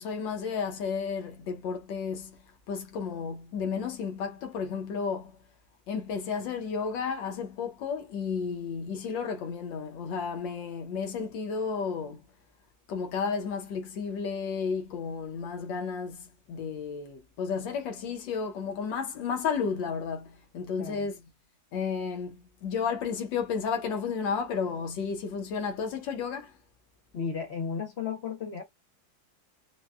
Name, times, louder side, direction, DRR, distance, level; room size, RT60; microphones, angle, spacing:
voice 1, 0.0-2.4 2.7-5.4 5.9-12.2 12.9-21.2 21.7-26.6, left 6 dB, 80° left, 1.6 m, -32 dB
voice 2, 20.8-21.1 27.1-28.6, left 6 dB, 65° left, 0.6 m, -34 dB
4.6 x 2.2 x 2.3 m
omnidirectional pair, 2.0 m